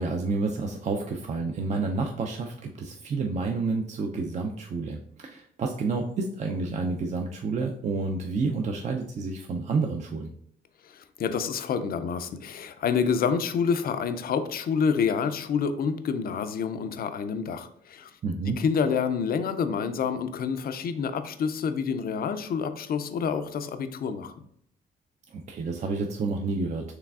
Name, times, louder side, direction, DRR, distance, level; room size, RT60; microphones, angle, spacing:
voice 1, 0.0-10.3 18.2-18.6 25.3-26.9, right 3 dB, 35° right, 2 dB, 0.4 m, -29 dB
voice 2, 10.9-18.1 18.6-24.3, left 6 dB, 50° left, 10 dB, 0.4 m, -28 dB
4.6 x 3.2 x 2.4 m, 0.69 s
cardioid pair, 90°, 20 cm